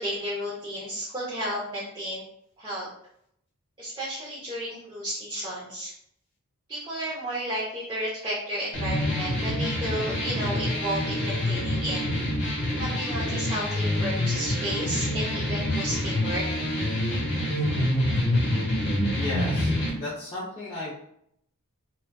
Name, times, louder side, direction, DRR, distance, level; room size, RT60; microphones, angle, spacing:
voice 1, 0.0-2.2 2.6-2.9 3.8-5.9 6.7-12.0 12.8-16.5, equal, 20° right, -8 dB, 0.6 m, -32 dB
sound 1, 8.7-19.9, left 1 dB, 50° left, 0.9 m, -26 dB
voice 2, 19.1-20.9, left 2 dB, 25° left, -8 dB, 0.5 m, -34 dB
2.3 x 2.3 x 2.2 m, 0.72 s
head